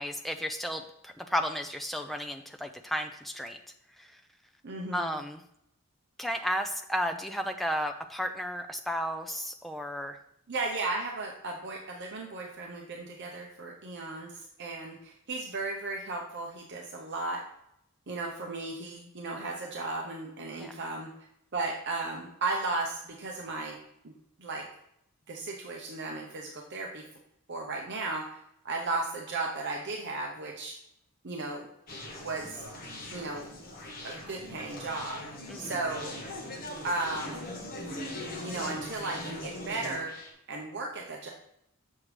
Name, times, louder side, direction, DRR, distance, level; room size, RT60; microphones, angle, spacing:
voice 1, 0.0-3.6 4.0-4.2 4.9-5.4 6.2-10.2 20.6-20.7 35.5-35.8, equal, ahead, 5 dB, 0.4 m, -33 dB
voice 2, 4.6-5.2 10.5-17.4 18.1-21.1 21.5-23.8 24.0-24.1 24.4-24.7 25.3-27.0 27.5-28.4 28.6-30.7 31.2-31.7 32.2-32.6 33.1-33.5 34.0-35.2 35.6-36.2 36.8-37.5 38.4-41.3, right 3 dB, 50° right, 0 dB, 0.7 m, -35 dB
Conversation, 31.9-40.3, left 1 dB, 40° left, 1.2 m, -41 dB
7.2 x 6.5 x 3.3 m, 0.78 s
head